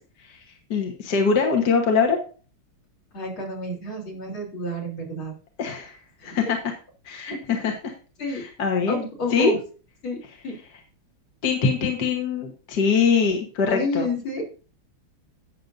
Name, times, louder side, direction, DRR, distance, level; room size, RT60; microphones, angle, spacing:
voice 1, 0.7-2.2 5.6-6.6 7.1-7.9 8.3-9.0 9.3-9.5 11.4-14.1, left 5 dB, 50° left, 1 dB, 1.8 m, -23 dB
voice 2, 3.1-5.3 6.2-6.4 8.2-8.4 8.9-9.6 10.0-10.5 13.7-14.4, left 1 dB, 70° left, -2 dB, 4.4 m, -29 dB
18.0 x 6.6 x 2.6 m, 0.37 s
omnidirectional pair, 2.4 m